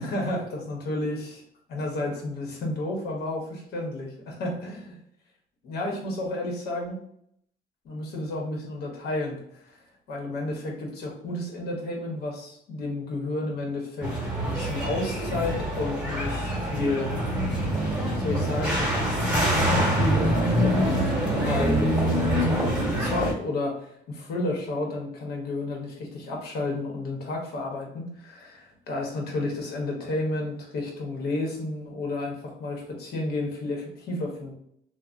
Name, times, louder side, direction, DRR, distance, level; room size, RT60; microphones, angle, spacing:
voice 1, 0.0-1.4 1.7-3.4 3.7-5.0 5.6-7.0 7.8-9.4 10.1-14.1 14.4-17.1 18.1-18.8 19.4-21.1 21.4-21.8 22.1-34.5, left 2 dB, 70° left, 0 dB, 1.0 m, -31 dB
sound 1, 14.0-23.3, equal, 5° right, 1.1 m, -25 dB
3.2 x 2.1 x 2.5 m, 0.70 s
cardioid pair, 110°, 17 cm